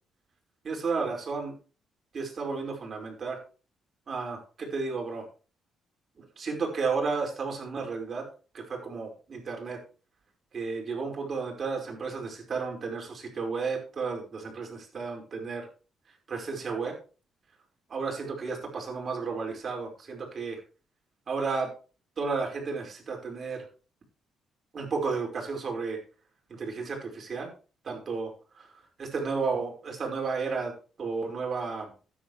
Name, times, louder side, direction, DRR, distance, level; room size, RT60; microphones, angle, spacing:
voice 1, 0.6-1.5 2.1-3.4 4.1-5.2 6.2-8.3 8.5-9.8 10.5-15.7 16.3-16.9 17.9-20.6 21.3-21.7 22.2-23.7 24.7-26.0 26.5-27.5 27.8-28.7 29.0-30.7 31.0-31.9, right 4 dB, 45° right, 1 dB, 5.1 m, -32 dB
13.5 x 10.0 x 3.3 m, 0.36 s
cardioid pair, 90°, 0 cm